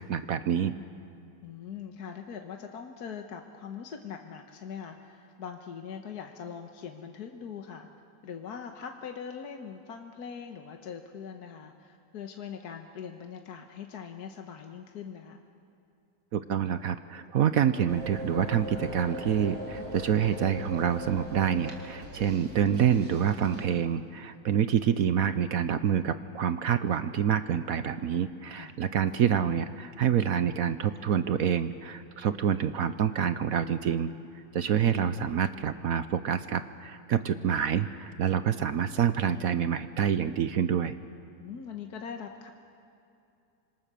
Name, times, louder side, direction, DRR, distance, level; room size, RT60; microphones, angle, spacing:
voice 1, 0.1-0.7 16.3-34.1 34.5-40.9, right 8 dB, 60° right, 12 dB, 1.0 m, -27 dB
voice 2, 1.4-7.9 8.2-15.4 28.5-28.8 34.9-35.1 41.4-42.5, left 7 dB, 60° left, 4 dB, 1.6 m, -42 dB
sound 1, 17.9-23.6, equal, 45° right, 3.6 m, -40 dB
26.0 x 25.5 x 6.9 m, 2.6 s
omnidirectional pair, 2.0 m